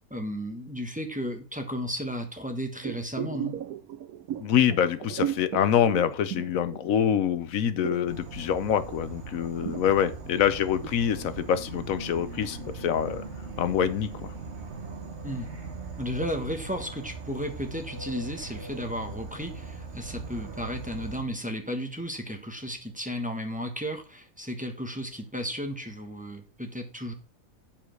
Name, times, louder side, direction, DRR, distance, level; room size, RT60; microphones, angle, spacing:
voice 1, 0.1-3.6 15.2-15.5 16.0-27.1, equal, 5° right, 4 dB, 1.2 m, -34 dB
sound 1, 2.8-7.2 7.5-11.0 11.4-11.5, right 11 dB, 85° right, 1.1 m, -36 dB
voice 2, 4.4-13.2 13.6-14.3, left 9 dB, 70° left, 13 dB, 1.1 m, -25 dB
Insect / Frog, 8.1-21.2, right 3 dB, 50° right, 1.6 m, -40 dB
7.2 x 5.0 x 6.2 m, 0.36 s
omnidirectional pair, 1.5 m